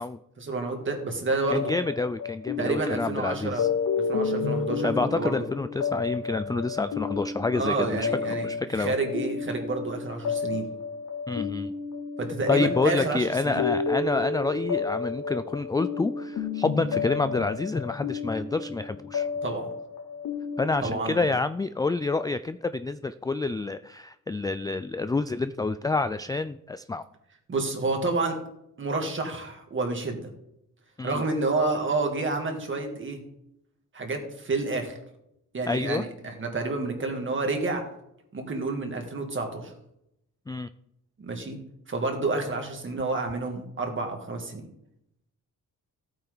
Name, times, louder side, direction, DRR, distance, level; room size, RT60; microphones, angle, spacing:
voice 1, 0.4-1.7 2.6-3.6 4.1-5.4 7.5-8.5 8.7-10.7 12.2-13.6 19.4-19.7 20.8-21.3 27.5-28.4 28.8-30.3 31.0-33.2 33.9-35.0 35.5-37.8 38.3-39.7 41.2-41.6 41.9-44.7, right 3 dB, 35° right, 3 dB, 2.6 m, -29 dB
sound 1, 1.5-20.8, left 5 dB, 85° left, 3.1 m, -31 dB
voice 2, 1.5-3.7 4.8-8.1 8.4-9.0 11.3-11.8 12.5-19.3 20.6-27.0 31.0-31.2 35.7-36.0 40.5-40.7, left 3 dB, 10° left, 12 dB, 0.3 m, -28 dB
15.5 x 9.0 x 4.0 m, 0.80 s
cardioid pair, 120°, 34 cm